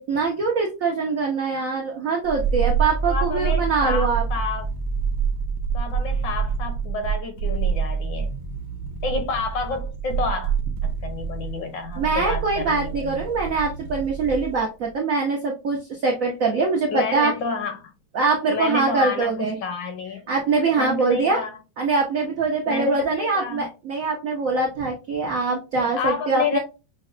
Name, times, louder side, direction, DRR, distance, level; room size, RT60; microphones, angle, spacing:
voice 1, 0.0-4.2 12.0-17.3 18.1-19.6 20.3-21.4 21.8-26.6, right 4 dB, 90° right, 0.7 m, -23 dB
sound 1, 2.2-14.6 14.9-15.0, right 6 dB, 70° right, 1.3 m, -27 dB
voice 2, 3.1-4.7 5.7-8.3 9.0-10.5 10.8-13.2 16.9-17.9 18.5-20.3 20.8-21.6 22.7-23.7 25.8-26.6, left 4 dB, 65° left, 1.3 m, -29 dB
6.1 x 2.1 x 2.4 m
omnidirectional pair, 2.3 m